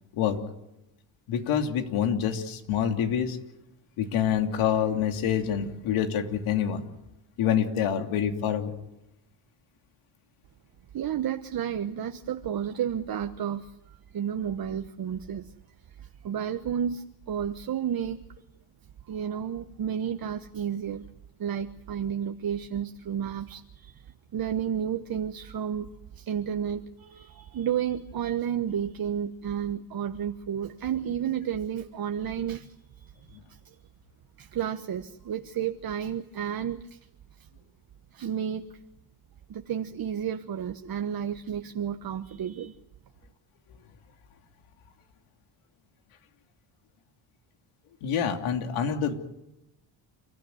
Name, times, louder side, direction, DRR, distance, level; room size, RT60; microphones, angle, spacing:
voice 1, 1.3-3.4 4.0-6.8 7.4-8.7 48.0-49.1, left 8 dB, 85° left, 3.1 m, -26 dB
voice 2, 10.9-15.5 16.0-18.2 19.1-21.0 21.4-24.1 24.3-25.9 26.1-33.8 34.4-37.0 38.1-38.8 39.5-42.7, right 9 dB, 45° right, 1.2 m, -32 dB
30.0 x 14.0 x 9.4 m
cardioid pair, 95°, 48 cm